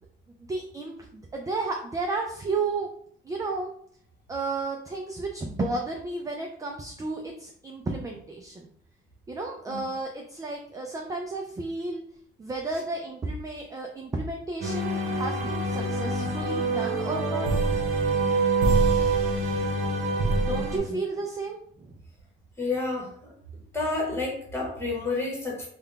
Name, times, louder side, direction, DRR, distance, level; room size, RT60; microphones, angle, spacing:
voice 1, 0.5-2.9 3.2-3.7 4.3-8.7 9.3-12.0 12.4-17.5 20.4-22.0, right 3 dB, 15° right, 1 dB, 0.3 m, -32 dB
sound 1, 14.6-20.8, right 3 dB, 70° right, 0.9 m, -25 dB
voice 2, 22.6-23.3 23.7-25.7, left 3 dB, 10° left, -3 dB, 1.2 m, -30 dB
3.7 x 2.2 x 3.3 m, 0.62 s
cardioid pair, 140°, 21 cm